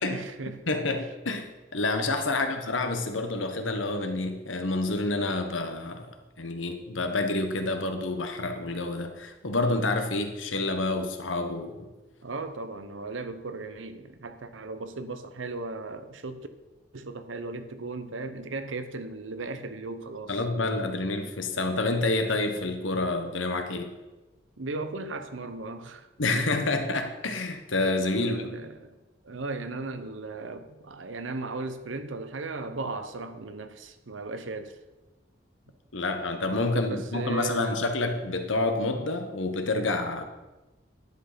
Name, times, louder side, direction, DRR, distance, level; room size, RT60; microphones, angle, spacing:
voice 1, 0.0-0.6 2.3-2.5 12.2-16.5 16.9-20.4 24.6-26.1 26.3-26.7 28.2-29.0 29.2-34.8 36.7-37.9, right 3 dB, 85° right, 0.9 m, -37 dB
voice 2, 0.7-6.1 6.4-11.9 20.3-23.9 26.2-28.5 35.9-40.2, left 2 dB, 90° left, 1.4 m, -28 dB
11.0 x 8.1 x 5.2 m
head